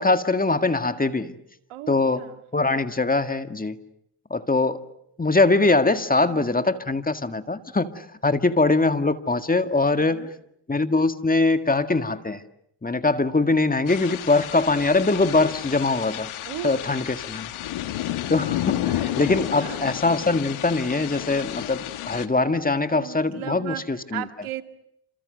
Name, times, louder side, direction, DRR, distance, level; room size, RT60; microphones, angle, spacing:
voice 1, 0.0-1.3 1.9-2.2 2.5-3.8 4.3-4.8 5.2-10.2 10.7-12.4 12.8-16.3 16.6-17.5 18.3-24.2, left 3 dB, 15° left, 9 dB, 1.9 m, -22 dB
voice 2, 1.7-2.4 6.3-6.6 9.9-10.3 16.4-16.9 19.6-19.8 22.9-24.6, right 13 dB, 85° right, 8 dB, 2.3 m, -36 dB
sound 1, 13.9-22.3, left 13 dB, 80° left, 1.9 m, -31 dB
28.5 x 27.5 x 6.7 m, 0.71 s
cardioid pair, 90°, 48 cm